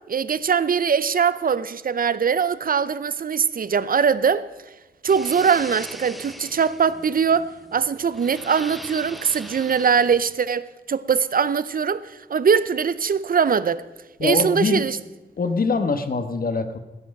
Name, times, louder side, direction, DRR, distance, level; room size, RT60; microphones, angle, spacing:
voice 1, 0.1-4.5 5.0-13.8 14.2-15.0, right 6 dB, 50° right, 0.6 m, -21 dB
sound 1, 5.1-10.4, equal, ahead, 0.6 m, -40 dB
voice 2, 14.2-14.9 15.4-16.8, left 4 dB, 50° left, 1.2 m, -23 dB
17.0 x 10.5 x 5.3 m
wide cardioid pair, 155°, 19 cm